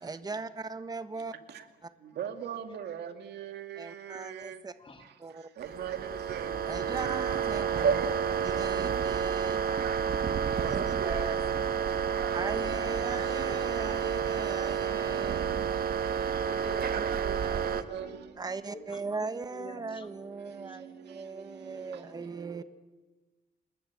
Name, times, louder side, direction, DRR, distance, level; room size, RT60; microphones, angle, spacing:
voice 1, 0.0-1.3 1.8-1.9 3.8-4.7 5.2-5.5 6.6-9.6 10.6-11.4 12.3-15.4 17.4-17.8 18.4-22.6, right 4 dB, 25° right, 1.3 m, -39 dB
voice 2, 2.2-4.5 5.6-6.5 10.6-11.2 16.7-16.8 17.2-17.4 17.9-18.1, right 9 dB, 85° right, 2.3 m, -39 dB
sound 1, 5.6-17.8, right 7 dB, 65° right, 1.4 m, -30 dB
voice 3, 12.4-12.7 13.3-14.0 16.4-17.2 17.9-18.1 18.7-20.1 20.7-20.8, left 3 dB, 30° left, 2.9 m, -48 dB
27.0 x 20.5 x 8.4 m
cardioid pair, 120°, 17 cm